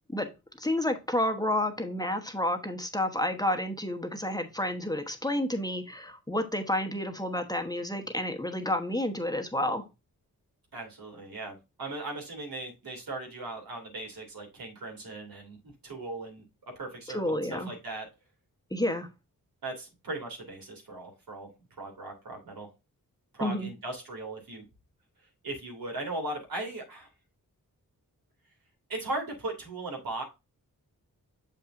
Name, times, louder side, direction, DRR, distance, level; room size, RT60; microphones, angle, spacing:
voice 1, 0.6-9.9 17.1-17.7 18.7-19.1 23.4-23.7, left 1 dB, 10° left, 1.1 m, -30 dB
voice 2, 10.7-15.6 15.8-16.4 16.8-18.1 19.6-21.5 21.8-22.7 23.3-24.6 25.4-27.1 28.9-30.2, right 2 dB, 80° right, 2.9 m, -38 dB
7.2 x 5.6 x 2.6 m
cardioid pair, 65°, 35 cm